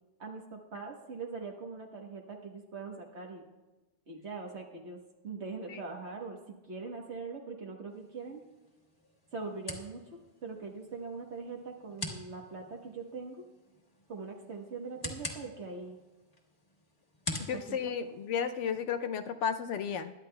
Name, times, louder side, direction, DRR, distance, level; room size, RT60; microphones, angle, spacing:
voice 1, 0.2-3.4 4.1-8.4 9.3-10.0 10.4-13.5 14.1-16.0 17.5-17.9, right 4 dB, 65° right, 0 dB, 1.5 m, -42 dB
sound 1, 7.9-18.8, left 2 dB, 30° left, 1.5 m, -46 dB
voice 2, 17.5-20.1, left 7 dB, 80° left, 8 dB, 0.9 m, -33 dB
21.5 x 10.5 x 2.3 m, 1.1 s
omnidirectional pair, 1.2 m